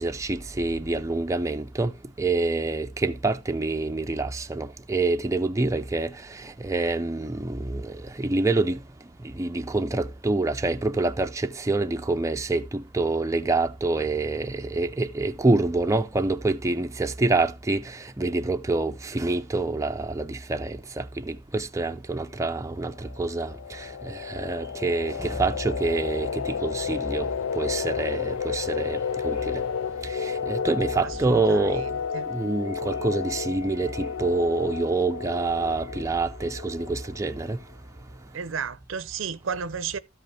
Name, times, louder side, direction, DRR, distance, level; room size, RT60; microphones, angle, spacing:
voice 1, 0.0-1.9 2.2-6.1 6.6-7.9 8.2-8.8 9.4-17.8 18.2-23.5 24.0-27.3 27.6-29.4 30.2-31.8 32.3-37.6, right 2 dB, 15° right, 0.5 m, -26 dB
sound 1, 22.9-37.4, left 6 dB, 80° left, 0.4 m, -32 dB
voice 2, 31.0-32.3 38.3-40.0, right 6 dB, 75° right, 0.6 m, -33 dB
13.0 x 5.4 x 3.3 m
head